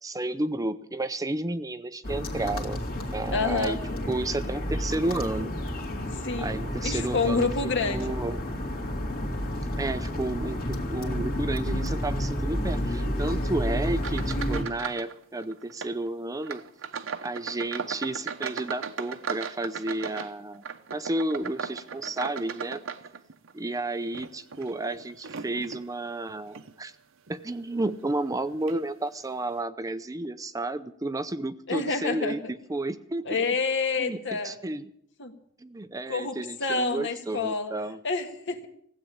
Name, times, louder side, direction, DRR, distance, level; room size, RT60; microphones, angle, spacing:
voice 1, 0.0-2.8 3.1-3.8 4.1-5.5 6.4-7.5 7.9-8.4 9.8-16.6 17.2-20.6 20.9-22.8 23.5-26.9 27.3-32.4 32.7-33.4 34.0-34.2 34.4-34.8 35.6-38.0, right 2 dB, 15° right, 12 dB, 0.6 m, -32 dB
sound 1, 2.0-14.6, equal, 45° left, 2.5 m, -30 dB
voice 2, 3.3-3.8 6.1-8.1 31.7-32.5 33.2-34.5 35.2-35.3 36.1-37.7 38.0-38.7, left 4 dB, 60° left, 6 dB, 1.8 m, -28 dB
sound 2, 14.0-15.1 15.4-16.0 16.4-23.5 24.0-25.9 26.5-26.7 27.3-27.4 28.3-28.4 28.7-28.8, right 6 dB, 65° right, 0.9 m, -37 dB
16.0 x 8.4 x 9.8 m, 0.70 s
head